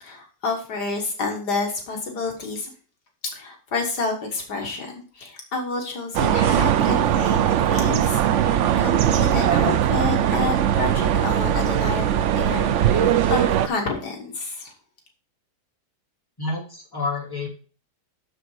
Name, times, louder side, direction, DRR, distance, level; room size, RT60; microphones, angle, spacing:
voice 1, 0.0-2.7 3.3-8.2 8.8-14.7, left 3 dB, 70° left, 2 dB, 2.0 m, -29 dB
sound 1, 6.1-13.7, right 10 dB, 75° right, 0.6 m, -20 dB
voice 2, 16.4-17.5, left 3 dB, 10° left, -3 dB, 2.5 m, -29 dB
6.8 x 6.6 x 4.7 m, 0.39 s
omnidirectional pair, 1.8 m